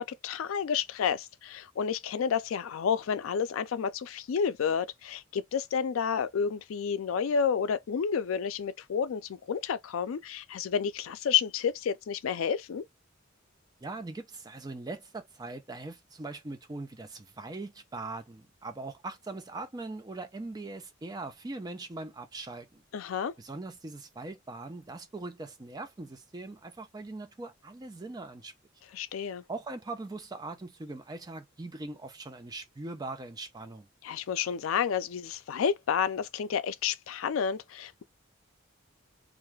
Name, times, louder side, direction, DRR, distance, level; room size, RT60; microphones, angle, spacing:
voice 1, 0.0-12.8 22.9-23.3 28.9-29.4 34.0-38.0, left 7 dB, 90° left, 0.4 m, -30 dB
voice 2, 13.8-22.8 23.4-28.5 29.5-33.9, right 2 dB, 20° right, 0.4 m, -41 dB
2.5 x 2.3 x 3.1 m
head